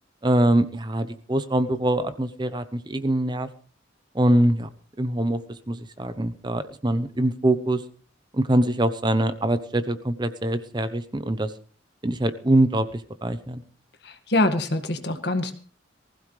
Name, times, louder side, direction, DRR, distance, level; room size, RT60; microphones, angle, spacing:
voice 1, 0.2-3.5 4.1-4.7 5.0-5.4 5.7-7.8 8.3-11.5 12.0-13.6, right 1 dB, 25° right, 11 dB, 0.8 m, -23 dB
voice 2, 14.0-15.5, left 2 dB, 60° left, 8 dB, 1.8 m, -24 dB
19.5 x 15.5 x 3.3 m, 0.42 s
head